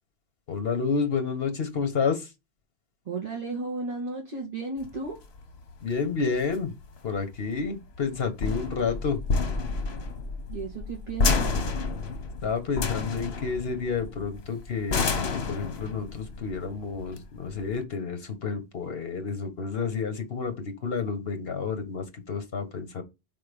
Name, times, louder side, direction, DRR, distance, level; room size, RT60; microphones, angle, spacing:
voice 1, 0.5-2.3 5.8-6.7 7.0-9.2 12.4-15.0 15.3-23.0, left 5 dB, 70° left, 1.5 m, -30 dB
voice 2, 3.1-5.2 10.5-11.5, right 3 dB, 40° right, 2.2 m, -34 dB
sound 1, 4.8-17.8, left 4 dB, 90° left, 1.2 m, -30 dB
4.3 x 4.2 x 5.2 m
omnidirectional pair, 1.0 m